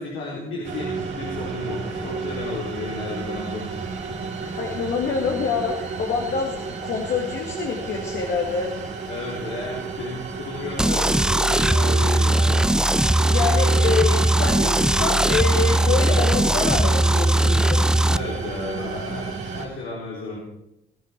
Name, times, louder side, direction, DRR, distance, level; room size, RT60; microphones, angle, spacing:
voice 1, 0.0-4.7 9.1-12.6 18.1-20.4, left 2 dB, 85° left, -4 dB, 4.1 m, -33 dB
sound 1, 0.6-19.7, right 5 dB, 65° right, 4.2 m, -32 dB
voice 2, 4.6-8.7 13.3-17.8, left 5 dB, 60° left, 0 dB, 2.2 m, -26 dB
sound 2, 10.8-18.2, right 1 dB, 5° right, 0.4 m, -19 dB
20.5 x 10.0 x 4.6 m, 0.86 s
cardioid pair, 90°, 20 cm